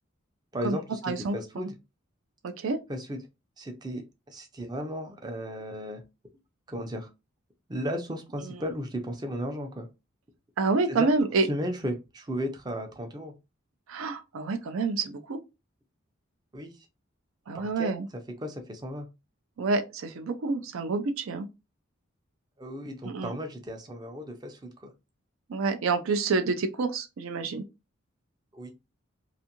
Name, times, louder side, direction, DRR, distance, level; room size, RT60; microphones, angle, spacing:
voice 1, 0.5-1.8 2.9-3.2 3.6-4.0 4.3-6.0 6.7-7.1 7.7-9.9 10.9-11.1 11.5-13.3 16.5-16.9 17.5-17.9 18.4-19.1 22.6-24.9 28.5-28.7, equal, 20° right, 0.5 m, -35 dB
voice 2, 1.0-1.7 2.4-2.8 10.6-11.5 13.9-15.4 17.5-18.1 19.6-21.5 23.0-23.4 25.5-27.6, right 3 dB, 80° right, 0.4 m, -28 dB
2.6 x 2.4 x 2.8 m
head